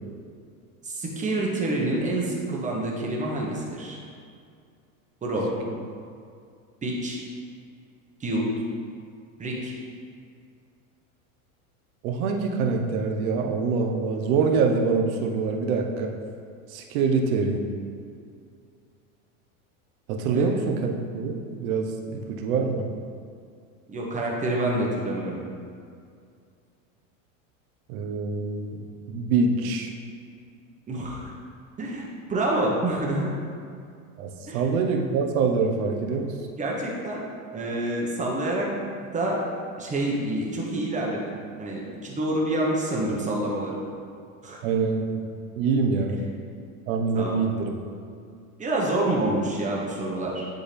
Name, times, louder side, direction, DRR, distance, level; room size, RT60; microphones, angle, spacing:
voice 1, 0.8-4.0 5.2-5.5 6.8-7.2 8.2-8.5 9.4-9.7 20.3-20.5 23.9-25.4 30.9-31.3 31.8-33.3 34.5-34.6 36.6-37.3 37.5-38.7 39.1-39.4 39.8-43.8 44.4-44.6 47.1-47.4 48.6-50.5, right 1 dB, 15° right, -3 dB, 1.2 m, -27 dB
voice 2, 12.0-16.1 16.7-17.6 20.1-22.9 27.9-28.8 29.1-29.9 34.2-36.4 44.6-45.2 45.6-46.2 46.9-47.7, right 4 dB, 70° right, 3 dB, 1.0 m, -25 dB
10.0 x 3.9 x 3.4 m, 2.3 s
supercardioid pair, 135°, 43 cm